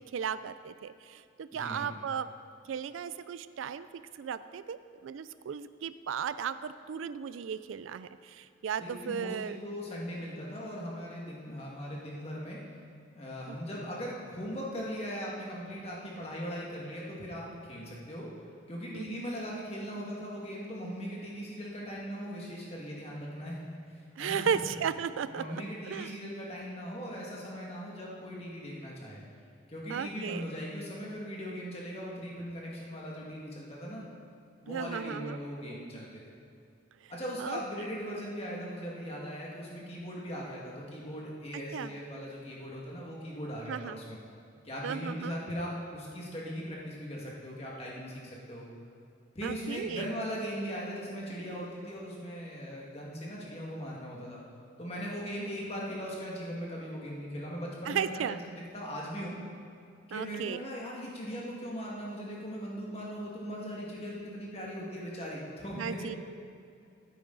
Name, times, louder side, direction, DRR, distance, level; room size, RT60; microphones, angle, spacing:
voice 1, 0.0-2.3 2.7-9.6 13.5-13.6 18.9-19.3 24.2-25.6 25.9-26.1 29.9-30.4 34.7-35.4 37.4-37.6 41.7-41.9 43.7-44.0 44.8-45.4 49.4-50.1 57.9-58.4 60.1-60.6 65.8-66.1, right 7 dB, 85° right, 14 dB, 0.3 m, -35 dB
voice 2, 1.5-1.9 8.8-12.6 13.2-18.3 18.7-23.6 23.9-24.6 25.3-29.2 29.7-34.1 34.6-36.2 37.1-44.2 44.6-48.7 49.4-54.4 54.8-59.3 60.1-66.2, equal, 30° left, -4 dB, 1.9 m, -39 dB
14.5 x 8.5 x 4.0 m, 2.5 s
head